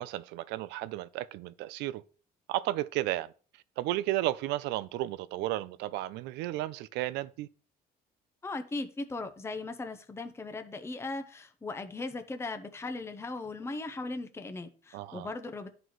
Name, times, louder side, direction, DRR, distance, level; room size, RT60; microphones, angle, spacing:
voice 1, 0.0-2.0 2.5-3.3 3.8-7.5 14.9-15.3, right 15 dB, 90° right, 0.4 m, -33 dB
voice 2, 8.4-15.7, left 3 dB, 15° left, 0.7 m, -38 dB
11.0 x 3.9 x 3.0 m
cardioid pair, 110°, 17 cm